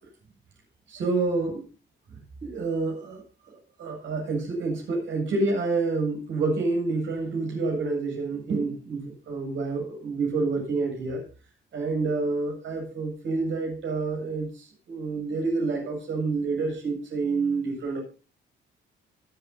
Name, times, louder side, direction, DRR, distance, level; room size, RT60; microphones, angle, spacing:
voice 1, 0.9-1.6 2.4-3.2 3.8-11.2 11.7-18.0, right 3 dB, 70° right, 1 dB, 7.6 m, -28 dB
25.5 x 8.5 x 2.8 m, 0.33 s
cardioid pair, 90°, 20 cm